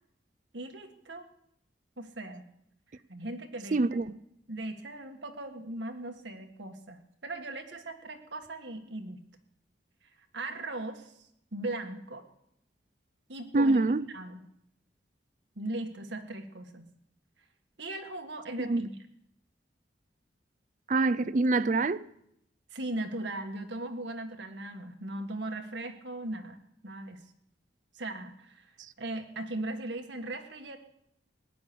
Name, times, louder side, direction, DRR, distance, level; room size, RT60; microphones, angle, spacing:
voice 1, 0.5-1.3 2.0-2.5 3.1-3.8 4.5-9.2 10.3-11.1 11.5-12.2 13.3-13.8 14.1-14.4 15.6-16.9 17.8-18.9 22.7-26.6 26.8-27.2 27.9-28.7 29.0-30.8, right 2 dB, 75° right, 1.7 m, -38 dB
voice 2, 3.7-4.2 13.5-14.1 18.6-18.8 20.9-22.0, right 3 dB, 45° right, 0.5 m, -25 dB
17.5 x 10.5 x 6.9 m
head